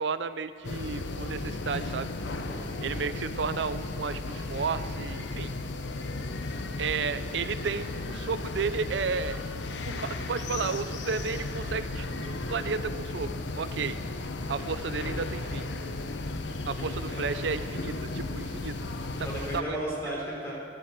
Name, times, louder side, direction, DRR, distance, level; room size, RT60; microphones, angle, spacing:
voice 1, 0.0-2.1 2.8-5.5 6.8-9.4 9.9-13.3 13.6-14.0 14.5-15.7 16.7-18.7 19.2-19.3 19.5-19.8, right 5 dB, 80° right, 13 dB, 0.5 m, -32 dB
sound 1, 0.6-19.6, left 2 dB, 80° left, 0.9 m, -35 dB
voice 2, 2.5-3.1 16.7-17.0 19.2-20.5, right 1 dB, 15° left, -5 dB, 4.3 m, -35 dB
12.5 x 11.5 x 7.3 m, 2.1 s
head